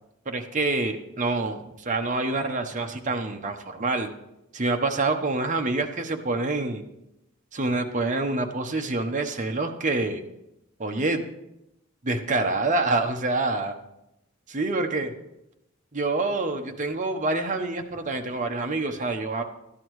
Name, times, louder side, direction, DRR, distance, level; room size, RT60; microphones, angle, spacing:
voice 1, 0.3-4.1 4.5-6.8 7.5-10.2 10.8-11.2 12.0-13.7 14.5-15.1 15.9-19.4, right 2 dB, 35° right, 4 dB, 0.9 m, -26 dB
13.5 x 11.0 x 3.1 m, 0.88 s
head